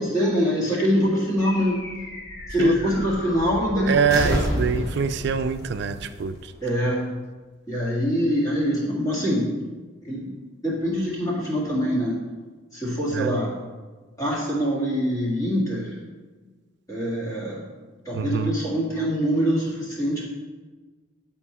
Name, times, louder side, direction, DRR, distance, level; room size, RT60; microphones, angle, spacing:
voice 1, 0.0-1.8 2.5-4.7 6.6-7.1 7.7-9.5 10.0-10.4 10.6-12.2 12.7-13.5 14.2-16.0 16.9-17.7 18.1-20.2, equal, 15° left, -6 dB, 1.8 m, -24 dB
sound 1, 1.4-7.1, equal, 50° left, 1.2 m, -32 dB
voice 2, 3.9-6.3 13.2-13.3 18.1-18.5, right 6 dB, 55° right, 11 dB, 0.3 m, -24 dB
8.9 x 4.5 x 4.3 m, 1.4 s
head